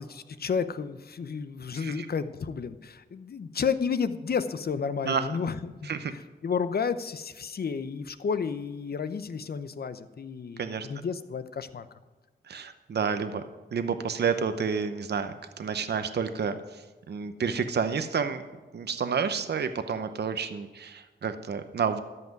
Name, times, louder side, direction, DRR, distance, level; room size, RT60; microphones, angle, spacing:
voice 1, 0.0-11.9, left 6 dB, 60° left, 12 dB, 0.8 m, -32 dB
voice 2, 1.7-2.1 5.0-5.3 5.8-6.1 10.6-10.9 12.5-13.4 13.7-18.4 18.7-22.0, right 6 dB, 70° right, 9 dB, 0.8 m, -30 dB
13.5 x 5.8 x 9.3 m, 1.2 s
cardioid pair, 70°, 18 cm